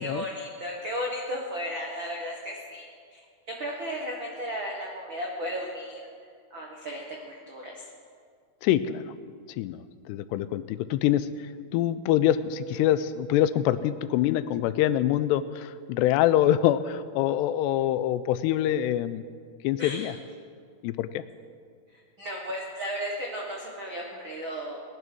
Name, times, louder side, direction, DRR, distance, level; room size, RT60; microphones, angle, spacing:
voice 1, 0.0-3.2 3.6-6.0 6.5-7.9 19.8-20.1 21.9-24.8, equal, 70° right, -1 dB, 1.1 m, -35 dB
voice 2, 8.6-9.1 9.6-19.2 19.6-20.1 20.8-21.2, left 12 dB, 90° left, 14 dB, 2.7 m, -25 dB
19.0 x 11.0 x 6.2 m, 2.1 s
omnidirectional pair, 4.8 m